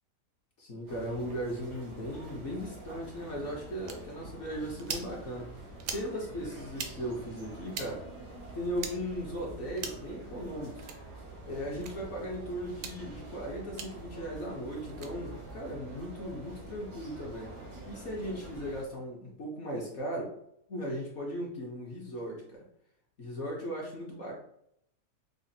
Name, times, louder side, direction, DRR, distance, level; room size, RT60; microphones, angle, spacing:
voice 1, 0.6-5.7 5.9-8.0 8.5-10.9 11.4-17.5 17.9-20.3 20.7-22.6 23.2-24.4, equal, 55° left, -2 dB, 0.9 m, -37 dB
sound 1, 0.9-18.8, right 2 dB, 90° right, 1.7 m, -46 dB
sound 2, 3.9-4.0 4.8-5.1 5.8-6.1 6.7-6.9 7.7-7.9 8.8-8.9 9.8-10.1 10.8-11.0 11.8-11.9 12.7-13.0 13.8-13.9 14.9-15.1, right 6 dB, 70° right, 0.8 m, -38 dB
5.0 x 2.1 x 2.6 m, 0.74 s
omnidirectional pair, 1.7 m